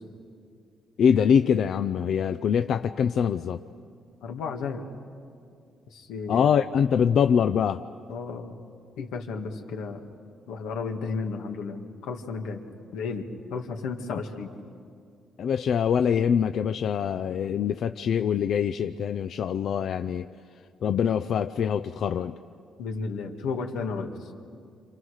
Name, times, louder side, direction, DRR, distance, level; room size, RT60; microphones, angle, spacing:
voice 1, 1.0-3.6 6.3-7.8 14.1-14.2 15.4-20.3 20.8-22.3, left 7 dB, 65° left, 9 dB, 0.5 m, -24 dB
voice 2, 4.2-4.8 5.9-6.5 8.1-8.5 9.0-10.1 10.5-12.6 12.9-14.5 22.8-24.1, left 4 dB, 90° left, 3 dB, 2.0 m, -33 dB
27.5 x 27.0 x 6.5 m, 2.4 s
cardioid pair, 90°, 0 cm